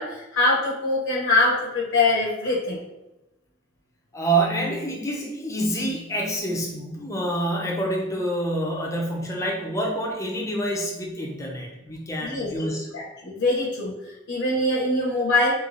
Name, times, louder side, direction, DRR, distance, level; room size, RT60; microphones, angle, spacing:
voice 1, 0.0-2.8 12.2-15.5, left 2 dB, 75° left, -4 dB, 0.6 m, -23 dB
voice 2, 4.1-12.9, right 1 dB, 15° left, -2 dB, 0.5 m, -27 dB
3.1 x 2.7 x 2.5 m, 0.97 s
head